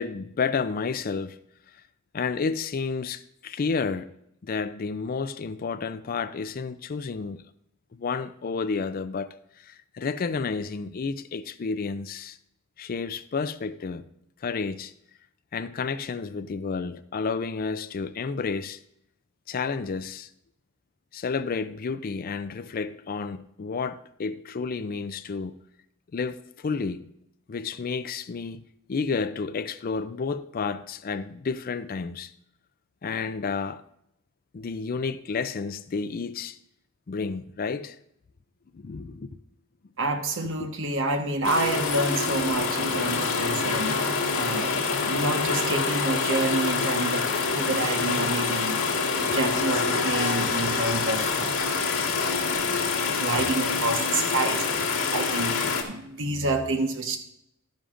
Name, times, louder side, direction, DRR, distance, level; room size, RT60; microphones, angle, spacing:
voice 1, 0.0-1.4 2.1-4.1 4.4-7.4 7.9-12.4 12.8-14.0 14.4-14.9 15.5-18.8 19.5-20.3 21.1-25.6 26.1-27.1 27.5-28.6 28.9-32.3 33.0-33.8 34.5-36.6 37.1-38.0 38.7-39.4 40.6-40.7 42.9-43.0 52.0-52.2, left 5 dB, 40° left, 0.4 m, -31 dB
voice 2, 40.0-48.8 49.2-51.8 52.1-57.2, right 2 dB, 60° right, 1.3 m, -29 dB
sound 1, 41.4-55.8, left 4 dB, 80° left, 1.8 m, -26 dB
12.5 x 10.5 x 2.5 m
head